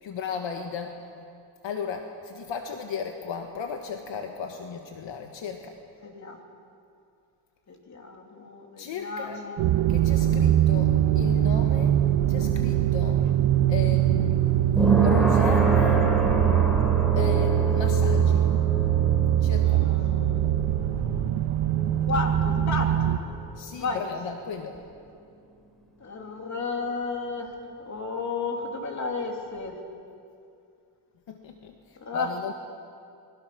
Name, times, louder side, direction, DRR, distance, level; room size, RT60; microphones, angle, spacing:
voice 1, 0.0-1.3 1.6-5.8 8.8-9.4 9.9-11.9 12.3-13.2 13.7-16.1 17.1-18.5 19.4-19.9 23.6-24.8 31.3-32.5, left 6 dB, 65° left, 4 dB, 1.6 m, -35 dB
voice 2, 6.0-6.4 7.7-9.7 19.6-20.5 22.1-23.2 23.8-24.0 26.0-27.5 27.8-29.8 32.0-32.3, left 3 dB, 35° left, 2 dB, 3.0 m, -33 dB
sound 1, 9.6-23.2, right 11 dB, 85° right, 1.2 m, -22 dB
sound 2, 12.0-23.2 23.5-23.6, right 3 dB, ahead, 3.3 m, -29 dB
29.5 x 22.0 x 6.1 m, 2.5 s
wide cardioid pair, 175°, 47 cm